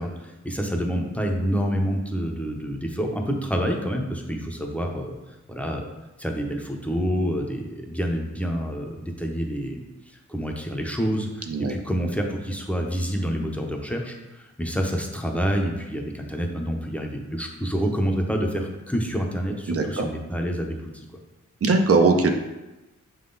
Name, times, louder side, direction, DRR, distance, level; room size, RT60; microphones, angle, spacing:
voice 1, 0.0-5.1 5.5-5.9 6.2-21.0, equal, 5° left, 1 dB, 0.7 m, -28 dB
voice 2, 19.7-20.1 21.6-22.3, right 3 dB, 50° right, 5 dB, 0.6 m, -20 dB
6.6 x 3.8 x 3.9 m, 1.0 s
wide cardioid pair, 135°, 31 cm